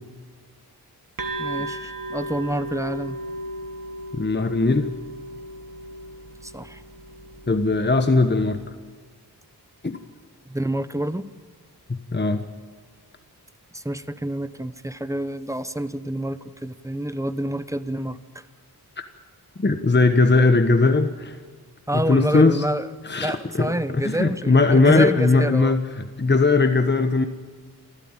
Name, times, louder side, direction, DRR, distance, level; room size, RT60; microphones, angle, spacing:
sound 1, 1.2-8.7, right 1 dB, 60° right, 2.3 m, -35 dB
voice 1, 1.4-3.2 6.4-6.8 10.5-11.2 13.7-18.2 21.9-22.9 23.2-25.8, right 1 dB, 10° right, 13 dB, 1.0 m, -28 dB
voice 2, 4.1-4.9 7.5-8.6 9.8-10.0 11.9-12.4 19.0-19.1 19.6-21.4 21.9-22.6 23.0-27.3, left 3 dB, 25° left, 8 dB, 1.3 m, -19 dB
28.0 x 13.5 x 9.0 m, 1.5 s
wide cardioid pair, 70°, 39 cm